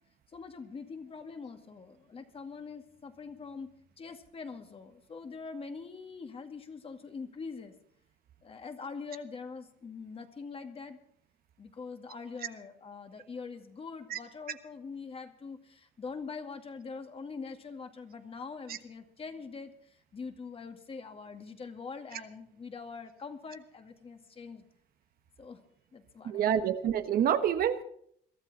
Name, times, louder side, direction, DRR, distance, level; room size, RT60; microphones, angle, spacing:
voice 1, 0.3-7.7 8.4-11.0 11.6-24.6 25.4-25.6 25.9-26.7, left 5 dB, 35° left, 2.1 m, -43 dB
voice 2, 26.2-27.8, right 9 dB, 60° right, 1.2 m, -27 dB
22.5 x 13.0 x 4.2 m
cardioid pair, 110°, 17 cm